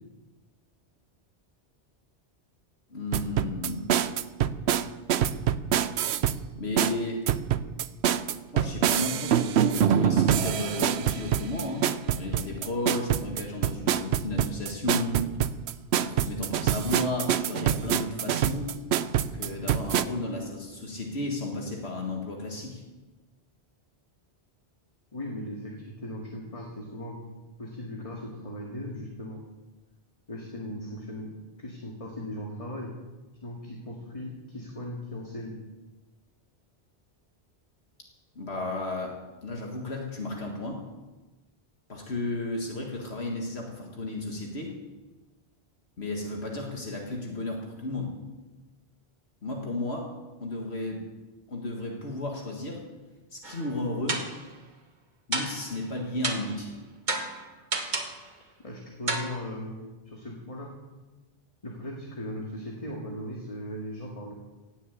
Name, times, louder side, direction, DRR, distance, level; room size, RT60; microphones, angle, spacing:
voice 1, 2.9-3.9 6.5-7.2 8.5-15.3 16.0-18.7 19.3-22.8 38.4-39.2 39.4-40.8 41.9-44.7 46.0-48.1 49.4-50.1 50.4-51.1 51.5-52.8 53.3-54.2 55.3-56.8, left 2 dB, 75° left, 0 dB, 2.1 m, -33 dB
sound 1, 3.1-6.4 6.8-20.0, right 9 dB, 75° right, 0.9 m, -25 dB
voice 2, 25.1-27.2 27.6-29.4 30.3-31.3 31.6-32.9 33.4-35.6 58.6-60.7 61.6-64.3, left 1 dB, 30° left, -2 dB, 2.1 m, -38 dB
sound 2, 53.4-53.7 54.1-54.5 55.3-55.8 56.2-56.6 57.1-58.2 59.1-59.3, right 3 dB, 45° right, 1.5 m, -31 dB
17.0 x 7.2 x 8.4 m, 1.2 s
omnidirectional pair, 1.1 m